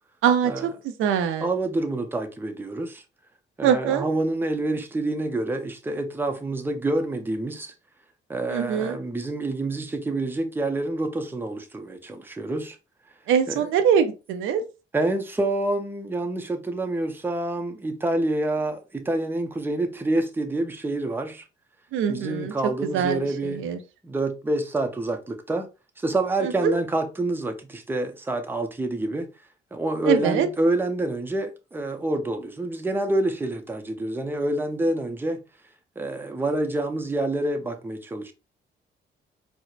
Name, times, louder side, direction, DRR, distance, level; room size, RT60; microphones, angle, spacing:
voice 1, 0.2-1.5 3.6-4.1 8.5-9.0 13.3-14.6 21.9-22.5 22.8-23.8 26.4-26.7 30.1-30.5, right 8 dB, 85° right, 0.5 m, -23 dB
voice 2, 1.4-3.0 3.6-7.7 8.3-12.8 13.5-13.7 14.9-21.4 22.1-23.7 24.0-25.7 26.0-29.3 29.7-35.4 36.0-38.3, right 2 dB, 10° right, 0.6 m, -27 dB
4.3 x 2.1 x 2.4 m
cardioid pair, 90°, 20 cm